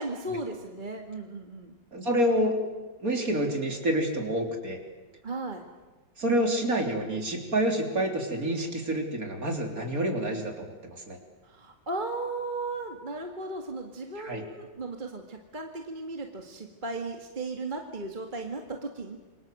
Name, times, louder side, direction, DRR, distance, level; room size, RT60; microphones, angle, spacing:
voice 1, 0.0-1.7 5.2-5.6 11.5-19.2, right 2 dB, 25° right, 3 dB, 2.0 m, -36 dB
voice 2, 1.9-2.6 3.0-4.8 6.2-11.2 14.2-14.4, right 1 dB, 50° right, 2 dB, 4.0 m, -28 dB
27.5 x 24.0 x 7.8 m, 1.2 s
omnidirectional pair, 1.9 m